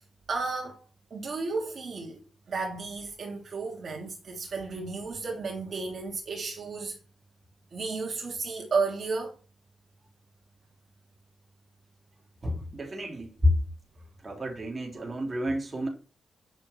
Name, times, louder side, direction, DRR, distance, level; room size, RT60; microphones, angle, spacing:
voice 1, 0.3-0.8 1.1-2.2 2.5-7.0 7.7-9.3, right 4 dB, 55° right, 2.8 m, -33 dB
voice 2, 12.4-13.5 14.2-15.9, left 1 dB, 25° right, 3.7 m, -29 dB
10.0 x 6.5 x 6.1 m
wide cardioid pair, 125°, 0 cm